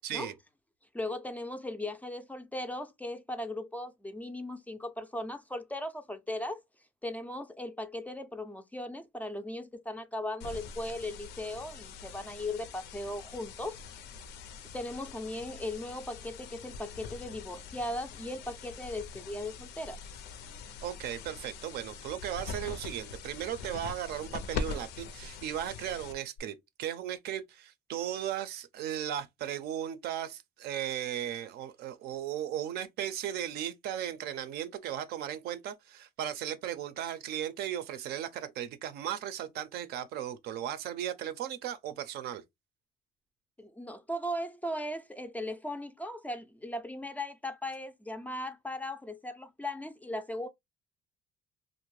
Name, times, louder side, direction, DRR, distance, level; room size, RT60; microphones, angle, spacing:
voice 1, 0.0-0.3 20.8-42.4, right 10 dB, 75° right, 0.5 m, -36 dB
voice 2, 0.9-6.6 7.0-13.8 14.7-20.0 43.6-50.5, left 1 dB, 10° left, 0.3 m, -38 dB
sound 1, 10.4-26.4, left 5 dB, 80° left, 0.5 m, -43 dB
2.5 x 2.0 x 3.0 m
cardioid pair, 110°, 17 cm